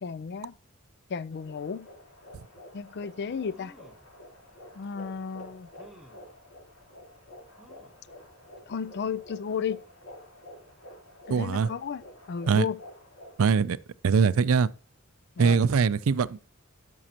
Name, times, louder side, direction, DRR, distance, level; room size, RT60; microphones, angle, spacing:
voice 1, 0.0-0.5 1.1-1.9 2.7-3.7 4.8-5.7 8.7-9.8 11.3-12.0 12.3-12.8 15.4-15.6, left 6 dB, 50° left, 0.4 m, -33 dB
sound 1, 1.3-13.5, left 1 dB, 85° left, 3.7 m, -50 dB
sound 2, 3.5-4.1 4.8-4.9 5.8-6.3 7.6-8.1 8.6-8.7 9.0-9.1, equal, ahead, 1.1 m, -54 dB
voice 2, 11.3-11.7 12.5-12.7 13.4-13.8 14.0-14.7 15.4-16.4, right 5 dB, 70° right, 0.4 m, -22 dB
12.5 x 6.1 x 2.9 m
head